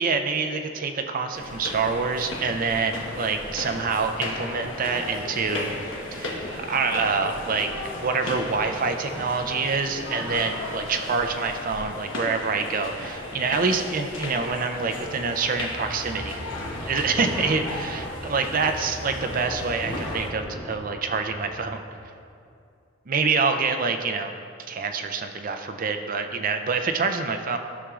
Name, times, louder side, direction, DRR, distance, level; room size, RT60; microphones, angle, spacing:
voice 1, 0.0-5.7 6.1-7.7 8.0-16.4 16.9-21.8 23.1-24.3 24.7-27.6, right 4 dB, 45° right, 6 dB, 0.5 m, -26 dB
sound 1, 1.3-20.3, left 2 dB, 80° left, 1.1 m, -35 dB
sound 2, 12.9-22.2, equal, 5° right, 1.5 m, -38 dB
13.0 x 6.1 x 2.4 m, 2.5 s
head